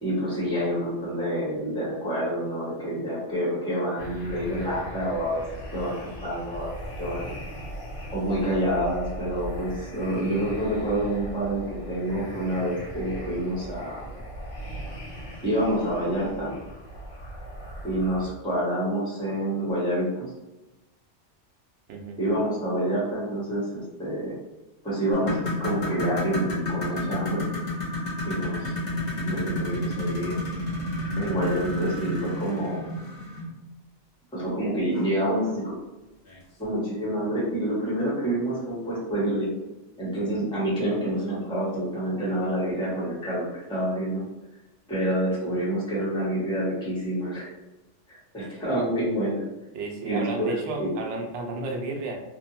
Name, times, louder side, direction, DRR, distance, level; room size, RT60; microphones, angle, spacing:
voice 1, 0.0-5.4 5.7-5.9 6.2-7.3 8.1-14.0 15.4-16.5 17.8-20.3 22.2-23.7 24.0-24.3 24.8-27.4 28.2-28.7 29.2-30.4 31.2-32.8 34.3-35.6 36.6-39.5 40.0-44.2 44.9-47.5 48.1-49.4 50.0-50.9, right 1 dB, 5° left, -8 dB, 0.9 m, -27 dB
sound 1, 4.0-18.3, equal, 80° left, 1.1 m, -39 dB
sound 2, 25.1-33.5 34.9-35.1 35.6-35.7 36.3-36.4, left 1 dB, 45° left, 0.7 m, -30 dB
voice 2, 49.7-52.2, right 3 dB, 75° right, 1 dB, 0.9 m, -32 dB
2.8 x 2.1 x 2.7 m, 1.0 s
omnidirectional pair, 1.2 m